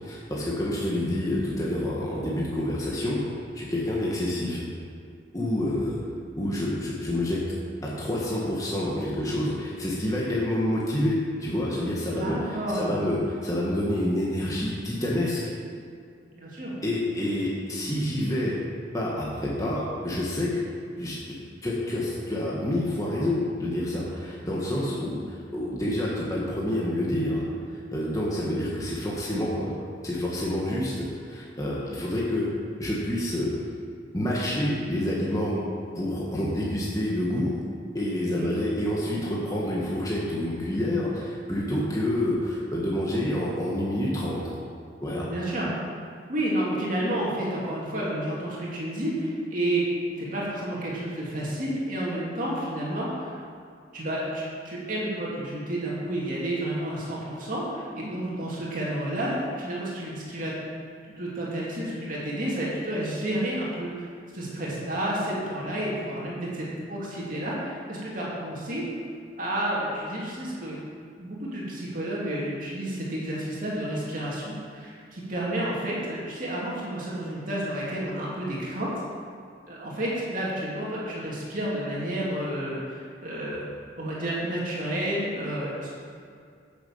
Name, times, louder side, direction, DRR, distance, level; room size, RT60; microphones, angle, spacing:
voice 1, 0.0-4.7 5.3-6.0 6.4-7.4 7.8-15.5 16.8-18.6 18.9-20.6 21.0-27.4 27.7-29.7 30.0-32.5 32.8-33.5 34.1-35.6 35.9-37.6 37.9-44.5 45.0-45.3, left 1 dB, 20° left, -5 dB, 1.6 m, -28 dB
voice 2, 12.2-13.0 16.3-16.7 38.3-38.5 45.2-45.7 46.3-49.8 50.2-53.4 53.9-60.5 61.2-64.1 64.3-68.9 69.4-70.8 71.2-78.9 79.7-83.6 84.0-85.9, right 1 dB, 45° right, -6 dB, 2.6 m, -30 dB
11.0 x 7.0 x 7.2 m, 2.3 s
head